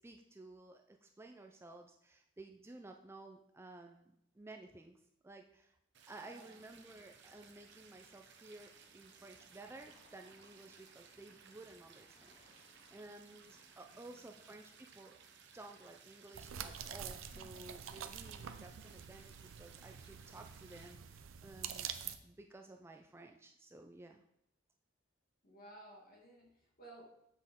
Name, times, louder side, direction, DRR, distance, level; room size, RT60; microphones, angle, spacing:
voice 1, 0.0-5.8 6.1-15.2 15.5-24.2, right 2 dB, 10° right, 3 dB, 0.4 m, -55 dB
sound 1, 5.9-20.9, right 6 dB, 60° right, 0.8 m, -61 dB
voice 2, 6.2-6.6 12.4-12.7 13.9-14.2 17.3-17.5 25.4-27.1, right 1 dB, 45° left, -1 dB, 1.9 m, -57 dB
sound 2, 6.5-17.5, left 2 dB, 30° left, 0.8 m, -71 dB
sound 3, 16.3-22.2, right 8 dB, 80° right, 0.5 m, -47 dB
7.6 x 6.3 x 3.6 m, 0.77 s
head